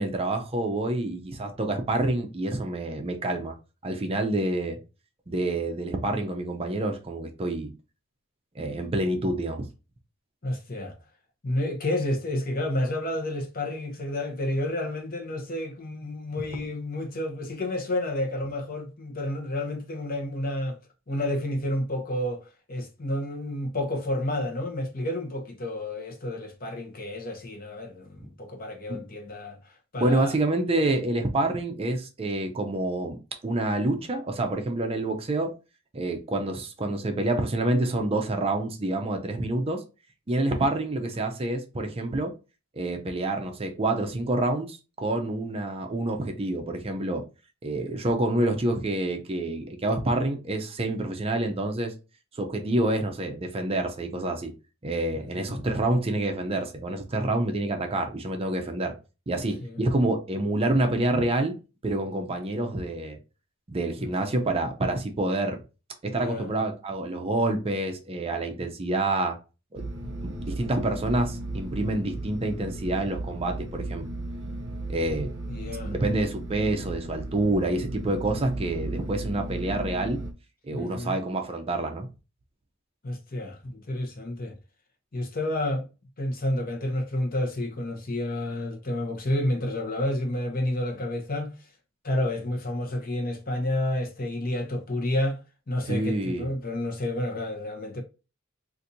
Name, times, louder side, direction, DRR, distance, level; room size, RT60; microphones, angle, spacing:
voice 1, 0.0-3.5 3.8-4.8 5.3-7.7 8.6-9.6 28.9-29.0 30.0-35.5 35.9-39.8 40.3-42.3 42.7-47.2 47.6-51.9 52.4-54.5 54.8-58.9 59.3-61.6 61.8-63.2 63.7-65.6 66.0-69.4 69.7-69.8 70.2-74.1 74.9-75.3 75.8-80.2 80.7-82.1 95.9-96.5, right 2 dB, 30° right, 0.5 m, -27 dB
voice 2, 10.4-11.0 11.4-20.8 21.1-29.6 29.9-30.3 40.4-40.6 55.4-55.6 59.6-59.8 64.0-64.1 66.1-66.5 70.0-70.2 75.5-75.9 80.7-81.1 83.0-84.6 85.1-85.9 86.2-91.6 92.0-95.4 95.7-98.0, left 1 dB, 45° left, 0.8 m, -30 dB
sound 1, 69.7-80.3, right 2 dB, 60° right, 0.8 m, -35 dB
4.0 x 2.5 x 2.7 m
head